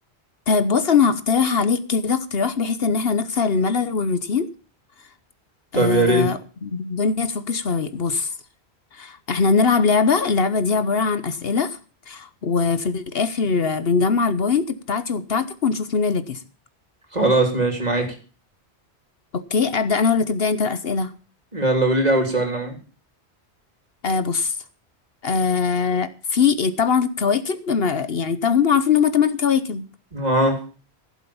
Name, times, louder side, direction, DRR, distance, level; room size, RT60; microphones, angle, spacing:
voice 1, 0.5-4.5 5.7-8.3 8.9-11.8 12.1-16.4 19.3-21.1 24.0-24.5 25.2-29.9, left 5 dB, 60° left, 1.1 m, -21 dB
voice 2, 5.7-6.3 17.1-18.2 21.5-22.8 30.1-30.6, right 2 dB, 40° right, 3.5 m, -20 dB
16.0 x 7.3 x 7.0 m
omnidirectional pair, 1.1 m